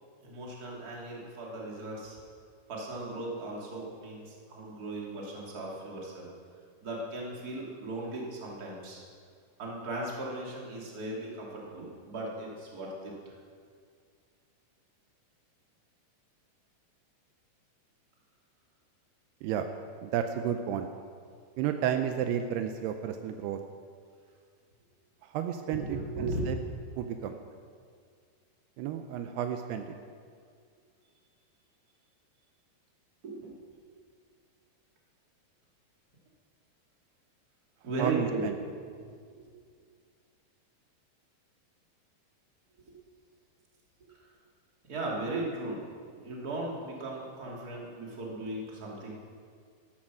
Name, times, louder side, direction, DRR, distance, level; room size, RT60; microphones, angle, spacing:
voice 1, 0.2-2.2 2.7-6.3 6.8-9.0 9.6-13.1 25.7-26.5 33.2-33.6 37.8-38.5 38.9-39.1 39.4-39.5 42.9-43.0 44.9-49.1, right 2 dB, 25° right, -3 dB, 2.6 m, -37 dB
voice 2, 20.0-20.9 21.6-23.6 25.2-26.6 27.0-27.4 28.8-29.9 38.0-38.6, right 9 dB, 80° right, 7 dB, 2.6 m, -32 dB
13.5 x 13.0 x 6.3 m, 2.1 s
omnidirectional pair, 4.7 m